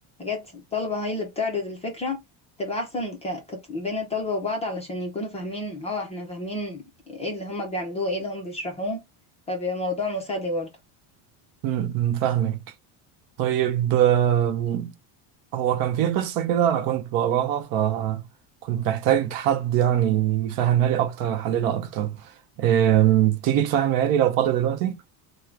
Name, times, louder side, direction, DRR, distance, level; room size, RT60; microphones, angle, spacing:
voice 1, 0.2-2.2 2.6-9.0 9.5-10.7, left 2 dB, 15° left, 0.4 m, -30 dB
voice 2, 11.6-12.6 13.4-14.9 15.5-18.2 18.6-22.3 22.6-25.0, right 11 dB, 50° right, 0.6 m, -22 dB
3.6 x 2.1 x 4.4 m
cardioid pair, 175°, 46 cm